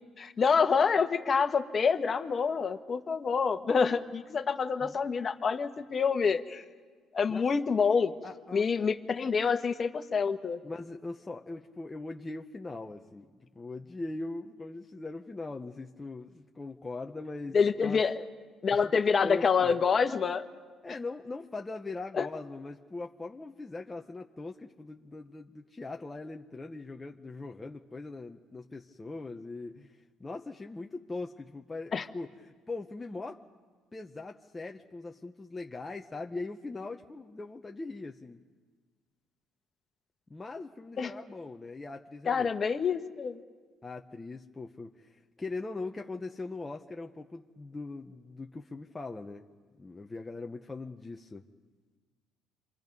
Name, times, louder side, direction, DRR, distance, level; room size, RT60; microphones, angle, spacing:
voice 1, 0.2-6.6 7.1-8.1 8.5-10.6 17.5-18.2 18.6-20.4 22.1-22.3 31.9-32.0 41.0-41.1 42.3-43.4, left 5 dB, 35° left, 8 dB, 1.3 m, -27 dB
voice 2, 8.2-8.9 10.6-18.0 18.7-19.8 20.8-33.4 33.9-38.4 40.3-42.5 43.8-49.5 49.8-51.4, left 3 dB, 15° left, 2 dB, 0.9 m, -41 dB
27.5 x 24.5 x 5.4 m, 1.5 s
cardioid pair, 100°, 0 cm